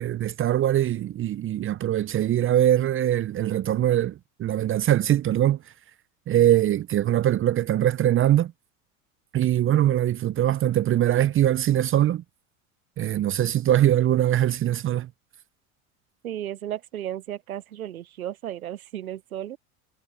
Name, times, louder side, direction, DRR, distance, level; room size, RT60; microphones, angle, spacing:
voice 1, 0.0-4.1 4.4-5.6 6.3-8.5 9.3-12.2 13.0-15.1, right 12 dB, 30° right, 0.7 m, -22 dB
voice 2, 16.2-19.6, right 11 dB, 85° right, 0.9 m, -34 dB
hypercardioid pair, 80°, 42 cm